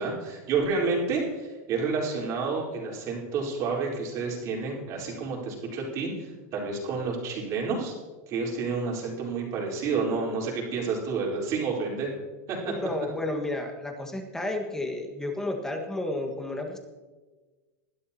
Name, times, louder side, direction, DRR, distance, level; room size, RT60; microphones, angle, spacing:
voice 1, 0.0-6.1 6.5-7.9 8.3-12.1 12.5-12.7, right 4 dB, 40° right, -2 dB, 4.0 m, -29 dB
voice 2, 12.7-16.8, left 2 dB, 5° left, 3 dB, 1.6 m, -32 dB
21.0 x 12.0 x 2.9 m, 1.3 s
supercardioid pair, 140°, 8 cm